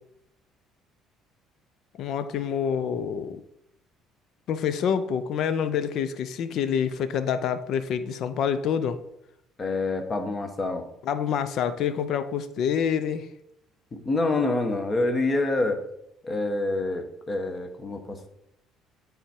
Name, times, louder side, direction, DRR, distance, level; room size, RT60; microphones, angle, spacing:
voice 1, 2.0-3.4 4.5-9.0 11.1-13.3, left 7 dB, 65° left, 12 dB, 0.6 m, -27 dB
voice 2, 9.6-10.8 13.9-15.8 16.2-18.3, left 2 dB, 30° left, 6 dB, 1.2 m, -27 dB
8.9 x 3.6 x 4.4 m, 0.79 s
supercardioid pair, 90°, 0 cm